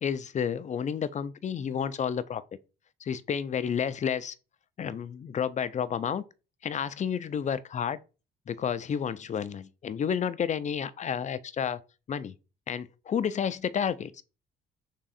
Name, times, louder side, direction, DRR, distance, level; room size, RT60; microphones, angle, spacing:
voice 1, 0.0-2.4 3.0-4.3 4.8-6.2 6.6-8.0 8.5-11.8 12.1-12.3 12.7-14.2, left 7 dB, 35° left, 0.4 m, -31 dB
3.6 x 3.0 x 4.2 m
cardioid pair, 90°, 20 cm